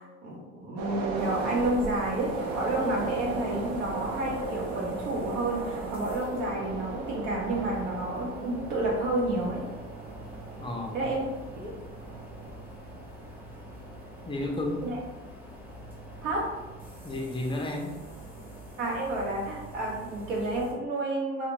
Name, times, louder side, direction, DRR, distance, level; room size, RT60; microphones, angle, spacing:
voice 1, 0.0-9.6 10.9-11.2 11.6-11.7 14.8-15.0 16.2-16.5 18.8-21.5, right 1 dB, 80° right, -2 dB, 0.8 m, -30 dB
sound 1, 0.8-15.3 15.7-15.8, right 3 dB, 45° right, 0.5 m, -37 dB
sound 2, 1.2-20.7, right 1 dB, 5° right, 0.8 m, -45 dB
voice 2, 10.6-11.1 14.3-14.9 17.0-18.0, left 2 dB, 15° left, 1 dB, 0.4 m, -32 dB
2.4 x 2.1 x 2.9 m, 1.1 s
hypercardioid pair, 65°, 36 cm